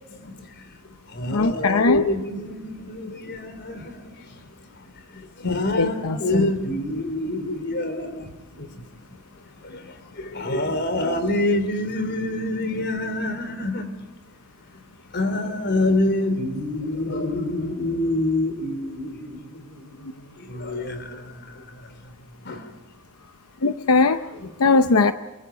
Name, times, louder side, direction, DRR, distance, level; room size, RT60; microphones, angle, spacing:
voice 1, 0.0-13.9 14.7-14.8 15.1-22.7 24.3-24.8, left 1 dB, 55° left, 3.5 m, -27 dB
voice 2, 1.3-2.0 5.4-6.4 23.6-24.2 24.6-25.1, left 3 dB, 90° left, 0.8 m, -20 dB
28.0 x 23.5 x 5.1 m
head